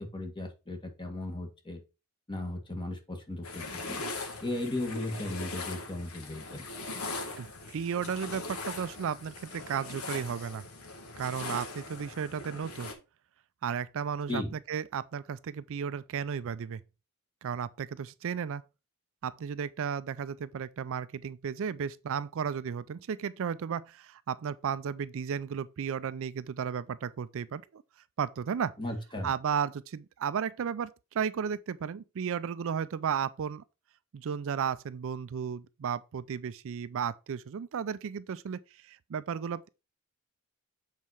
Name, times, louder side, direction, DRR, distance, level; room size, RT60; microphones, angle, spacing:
voice 1, 0.0-1.8 2.3-4.0 4.4-6.6 14.3-14.5 28.8-29.3, left 1 dB, 20° left, 1.6 m, -36 dB
sound 1, 3.4-12.9, left 3 dB, 70° left, 1.6 m, -40 dB
voice 2, 7.4-10.6 11.2-12.9 13.6-14.4 14.7-16.8 17.4-18.6 19.2-27.8 28.2-28.7 29.2-33.6 34.1-39.7, right 7 dB, 60° right, 0.4 m, -34 dB
7.5 x 4.2 x 4.6 m
head